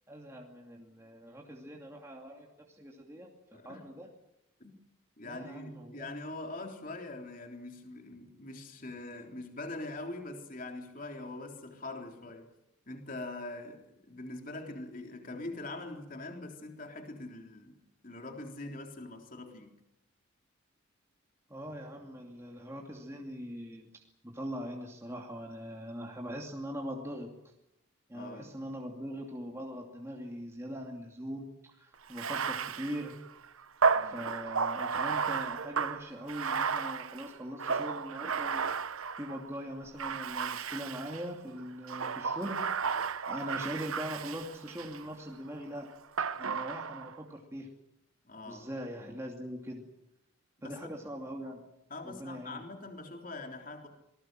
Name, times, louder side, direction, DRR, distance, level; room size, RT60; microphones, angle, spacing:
voice 1, 0.1-4.1 5.2-6.1 21.5-27.3 28.1-33.2 34.0-38.9 39.2-42.6 43.3-45.9 46.4-47.7 48.4-49.8 50.6-51.6 52.0-52.6, equal, 15° right, 0 dB, 2.6 m, -41 dB
voice 2, 3.5-3.8 4.6-4.7 5.2-12.5 12.9-19.7 28.1-28.5 33.9-34.3 48.3-48.6 49.0-49.2 50.6-50.9 51.9-53.9, left 2 dB, 40° left, 3 dB, 3.7 m, -43 dB
Bathtub (filling or washing), 32.1-39.4 40.0-41.3 41.8-45.0 46.2-47.1, right 5 dB, 80° right, 1.0 m, -33 dB
27.0 x 20.5 x 7.6 m, 0.84 s
head